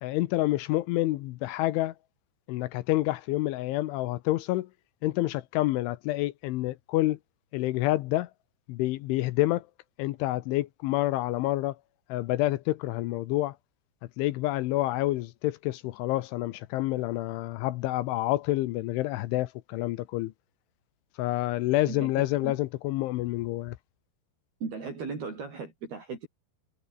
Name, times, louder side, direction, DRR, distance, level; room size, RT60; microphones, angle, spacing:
voice 1, 0.0-1.9 2.5-4.7 5.0-7.2 7.5-8.3 8.7-9.7 10.0-11.8 12.1-13.6 14.2-20.3 21.2-23.8, left 17 dB, 80° left, 3.2 m, -28 dB
voice 2, 21.9-22.6 24.6-26.3, right 4 dB, 50° right, 8.5 m, -37 dB
omnidirectional pair, 5.7 m